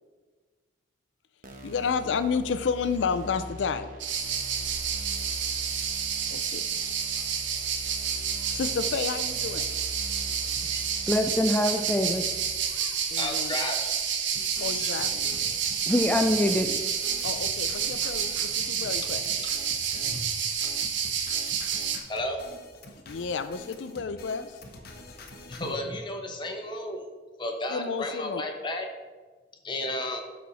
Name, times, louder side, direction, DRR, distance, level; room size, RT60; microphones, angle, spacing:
sound 1, 1.4-12.5, right 1 dB, 50° right, 1.1 m, -43 dB
voice 1, 1.6-3.9 6.3-6.9 8.5-9.7 13.1-13.5 14.6-15.3 17.2-19.2 23.1-24.6 27.7-28.4, left 5 dB, 75° left, 11 dB, 0.4 m, -31 dB
sound 2, 4.0-22.0, right 7 dB, 85° right, 0.8 m, -29 dB
voice 2, 11.1-12.2 15.9-16.7, left 1 dB, 10° left, 4 dB, 0.3 m, -24 dB
voice 3, 13.2-13.9 14.6-15.0 15.3-15.4 18.6-18.9 19.4-19.5 20.0-20.5 22.1-22.4 25.5-27.0 27.4-28.9 29.6-30.2, left 1 dB, 25° left, 3 dB, 1.0 m, -33 dB
sound 3, 14.3-25.7, left 2 dB, 55° left, 0.9 m, -46 dB
12.0 x 4.3 x 4.1 m, 1.3 s
head